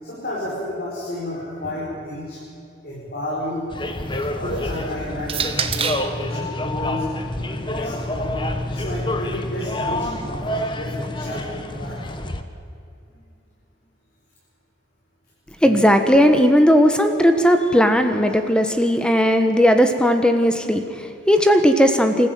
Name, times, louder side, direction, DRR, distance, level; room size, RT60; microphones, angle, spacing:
voice 1, 0.0-2.4 2.8-3.6 4.2-7.0 7.5-8.4 8.7-12.0, left 1 dB, 55° left, -6 dB, 5.9 m, -31 dB
sound 1, 3.7-12.4, left 1 dB, 25° left, 1.2 m, -28 dB
sound 2, 3.7-6.2 7.2-9.3, right 7 dB, 30° right, 1.1 m, -32 dB
voice 2, 15.6-22.3, equal, 5° left, 7 dB, 1.3 m, -16 dB
26.5 x 14.5 x 9.3 m, 2.5 s
head